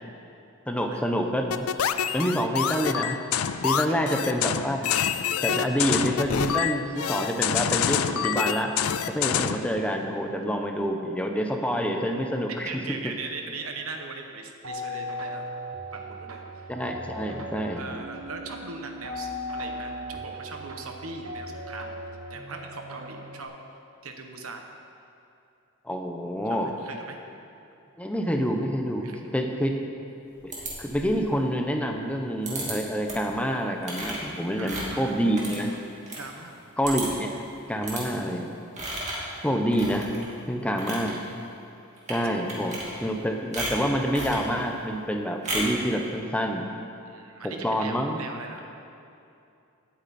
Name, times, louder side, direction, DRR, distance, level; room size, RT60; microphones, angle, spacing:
voice 1, 0.7-1.5 2.1-3.2 3.6-5.0 5.4-8.7 9.1-13.0 16.7-17.8 25.8-26.7 28.0-29.8 30.4-30.5 30.8-35.7 36.8-37.4 37.7-38.5 39.4-40.1 40.5-41.2 42.1-46.7 47.4-48.2, equal, 5° left, 3 dB, 0.9 m, -27 dB
sound 1, 1.5-9.7, left 8 dB, 75° left, 0.5 m, -26 dB
voice 2, 3.6-4.0 5.5-5.7 12.6-15.4 15.9-16.4 17.7-22.0 22.3-23.5 24.0-24.6 26.5-27.2 29.0-29.4 34.6-35.8 36.2-36.6 47.0-48.7, right 3 dB, 70° right, 4 dB, 1.2 m, -40 dB
sound 2, 14.6-23.4, equal, 90° right, 1.5 m, -37 dB
sound 3, 30.5-31.2 32.5-32.7 33.1-33.4 33.8-36.2 36.5-36.6 36.8-37.3 37.8-38.0 38.7-39.3 39.7-40.3 40.6-41.1 42.0-42.2 42.5-43.2 43.5-44.5 45.4-45.8, right 1 dB, 35° right, 2.6 m, -33 dB
18.0 x 8.7 x 4.4 m, 2.7 s
head